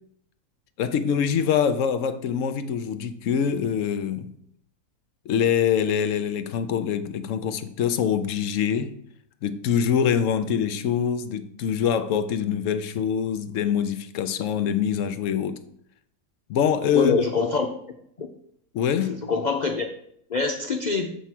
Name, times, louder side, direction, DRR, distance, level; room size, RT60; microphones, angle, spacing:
voice 1, 0.8-4.3 5.3-9.0 9.4-15.6 16.5-17.2 18.7-19.2, left 8 dB, 70° left, 0.8 m, -24 dB
voice 2, 16.9-17.7 18.2-18.3 19.0-19.9 20.3-21.2, left 4 dB, 90° left, 0.4 m, -25 dB
6.9 x 4.6 x 5.9 m
omnidirectional pair, 1.6 m